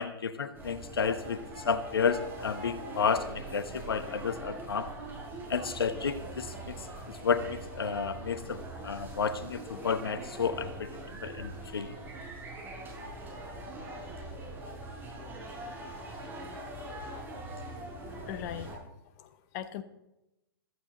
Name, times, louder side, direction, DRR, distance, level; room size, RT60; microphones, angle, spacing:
voice 1, 0.0-1.4 1.6-4.9 5.5-6.8 7.2-10.9 11.2-11.9, left 6 dB, 75° left, 13 dB, 1.1 m, -31 dB
sound 1, 0.5-18.8, right 2 dB, 15° right, 6.0 m, -42 dB
voice 2, 18.1-18.8 19.2-19.8, left 10 dB, 45° left, 12 dB, 1.0 m, -40 dB
15.5 x 14.5 x 3.9 m, 0.91 s
figure-of-eight pair, 110°, 12 cm